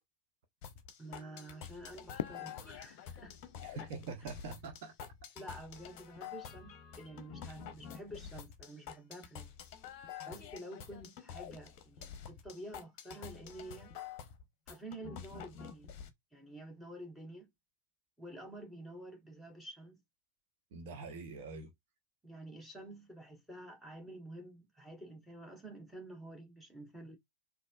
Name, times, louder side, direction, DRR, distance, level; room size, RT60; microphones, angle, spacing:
sound 1, 0.6-16.1, left 8 dB, 40° left, 0.7 m, -48 dB
voice 1, 1.0-3.4 5.3-9.6 10.2-14.0 14.7-15.9 16.3-17.5 18.2-20.0 22.2-27.2, right 1 dB, ahead, 1.5 m, -49 dB
Fireworks, 2.2-5.2, left 10 dB, 60° left, 0.3 m, -46 dB
voice 2, 3.6-4.9 20.7-21.7, right 4 dB, 50° right, 0.9 m, -44 dB
4.1 x 2.8 x 2.3 m
figure-of-eight pair, 90°, 0 cm